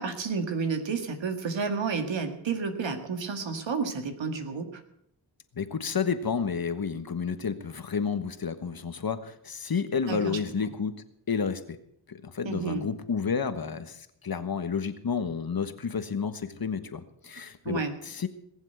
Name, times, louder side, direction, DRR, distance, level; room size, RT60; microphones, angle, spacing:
voice 1, 0.0-4.7 10.1-10.4 12.5-12.9 17.7-17.9, right 5 dB, 80° right, 6 dB, 2.0 m, -31 dB
voice 2, 5.5-10.9 11.3-11.8 12.1-18.3, left 6 dB, 50° left, 10 dB, 1.4 m, -31 dB
19.5 x 7.3 x 8.0 m, 0.73 s
cardioid pair, 60°, 44 cm